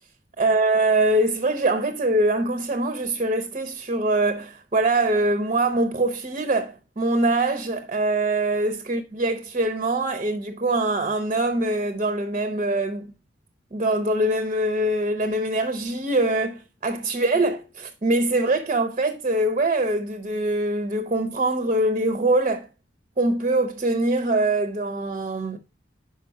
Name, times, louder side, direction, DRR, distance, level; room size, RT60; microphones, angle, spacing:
voice 1, 0.4-13.1 13.7-22.7 23.2-25.6, right 2 dB, 35° right, 0.6 m, -23 dB
5.3 x 4.9 x 4.6 m
head